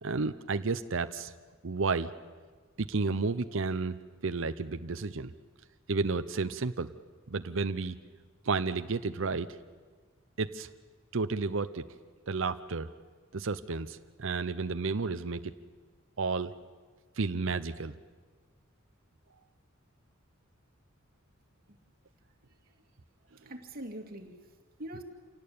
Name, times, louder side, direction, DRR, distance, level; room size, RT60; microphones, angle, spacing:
voice 1, 0.0-1.3 1.6-2.1 2.8-5.3 5.9-6.9 7.3-7.9 8.4-9.6 10.4-10.7 11.1-11.9 12.3-12.9 13.3-15.6 16.2-16.5 17.2-17.9, right 4 dB, 70° right, 10 dB, 0.8 m, -32 dB
voice 2, 22.2-22.8 23.2-25.0, right 1 dB, 50° right, 4 dB, 2.4 m, -45 dB
27.5 x 18.0 x 8.7 m, 1.5 s
head